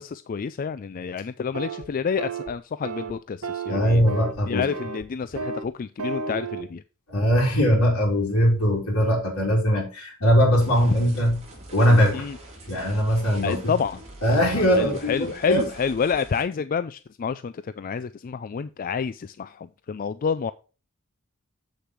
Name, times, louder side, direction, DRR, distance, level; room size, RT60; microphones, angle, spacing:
voice 1, 0.0-4.0 4.5-6.8 12.1-12.4 13.4-20.5, left 6 dB, 40° left, 14 dB, 0.3 m, -29 dB
sound 1, 1.5-1.9 2.2-2.5 2.8-3.1 3.4-4.4 4.7-5.0 5.4-5.7 6.0-6.6, right 4 dB, 85° right, 1.3 m, -32 dB
voice 2, 3.7-4.7 7.1-11.4 11.7-12.3 12.7-13.7 14.2-15.7, equal, 75° left, -4 dB, 3.6 m, -21 dB
sound 2, 10.6-16.4, right 1 dB, 30° right, 3.3 m, -44 dB
8.0 x 6.7 x 4.6 m, 0.33 s
head